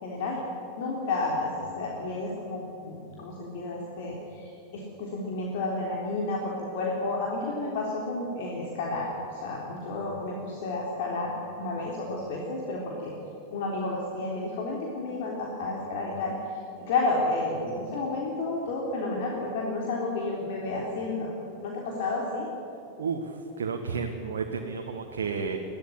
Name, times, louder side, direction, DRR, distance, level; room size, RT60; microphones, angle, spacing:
voice 1, 0.0-9.1 9.3-13.1 13.5-16.4 16.8-21.3 21.6-22.5, left 2 dB, 50° left, -2 dB, 3.6 m, -31 dB
voice 2, 23.0-25.6, right 5 dB, 65° right, 2 dB, 1.7 m, -32 dB
22.5 x 16.0 x 9.9 m, 2.9 s
figure-of-eight pair, 90°, 0 cm